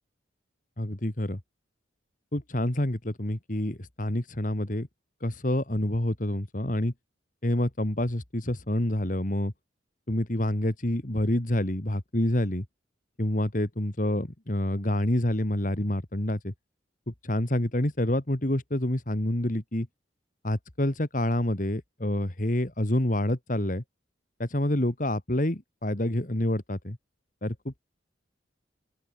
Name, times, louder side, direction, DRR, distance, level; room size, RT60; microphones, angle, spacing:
voice 1, 0.8-1.4 2.3-4.9 5.2-6.9 7.4-9.5 10.1-12.7 13.2-16.5 17.1-19.9 20.4-23.8 24.4-27.0 27.4-27.8, left 1 dB, 40° left, 2.0 m, -27 dB
open air
head